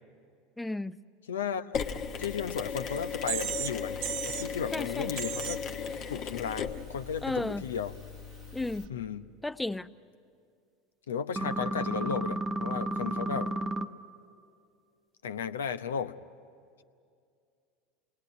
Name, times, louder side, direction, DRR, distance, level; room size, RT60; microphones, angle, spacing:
voice 1, 0.6-1.0 4.7-5.1 7.2-7.6 8.5-8.9 9.4-9.9, left 2 dB, 10° left, 15 dB, 0.6 m, -33 dB
voice 2, 1.3-1.8 2.2-4.0 4.2-5.6 6.1-8.0 8.9-9.2 11.1-13.6 15.2-16.1, left 7 dB, 80° left, 11 dB, 0.8 m, -34 dB
Mechanisms, 1.7-8.9, left 6 dB, 50° left, 1.4 m, -37 dB
sound 1, 2.9-3.0 3.3-3.8 4.0-4.5 5.2-5.6, right 11 dB, 60° right, 0.9 m, -34 dB
sound 2, 11.4-13.9, right 2 dB, 20° right, 0.9 m, -32 dB
28.0 x 21.0 x 9.6 m, 2.4 s
hypercardioid pair, 80°, 0 cm